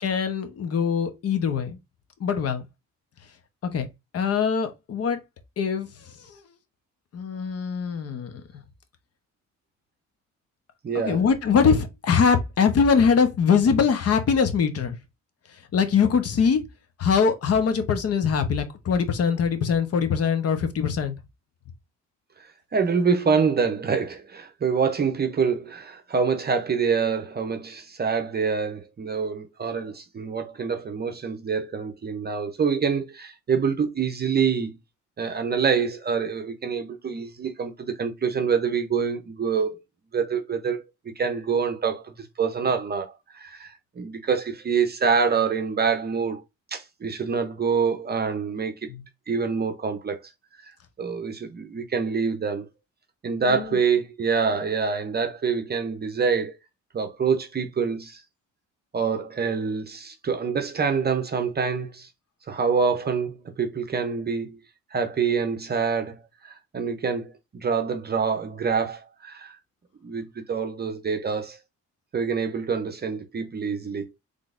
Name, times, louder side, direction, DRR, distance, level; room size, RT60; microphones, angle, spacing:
voice 1, 0.0-1.8 2.2-2.6 3.6-3.9 4.1-5.2 5.6-5.9 6.3-6.4 7.1-8.3 10.9-15.0 15.7-16.6 17.0-21.1 48.9-49.0 53.5-53.8, left 6 dB, 55° left, 0.9 m, -22 dB
voice 2, 10.8-11.2 22.7-34.7 35.2-39.8 40.1-40.8 41.2-46.4 46.7-48.9 49.3-50.2 51.0-52.7 53.2-56.6 56.9-58.2 58.9-62.1 62.5-64.6 64.9-66.2 66.4-69.6 70.0-71.6 72.1-74.1, right 5 dB, 35° right, 0.6 m, -26 dB
3.7 x 3.3 x 2.5 m
cardioid pair, 90°, 30 cm